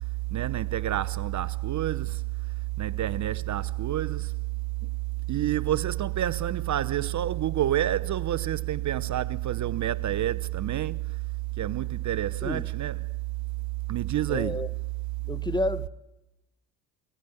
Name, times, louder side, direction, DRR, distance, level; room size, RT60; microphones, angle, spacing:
voice 1, 0.3-2.2 2.8-4.3 5.3-11.0 11.6-13.0 13.9-14.6, right 13 dB, 45° right, 0.9 m, -28 dB
voice 2, 14.3-14.7 15.3-15.9, left 2 dB, 10° left, 1.1 m, -30 dB
29.0 x 19.5 x 9.3 m
hypercardioid pair, 65°, 40 cm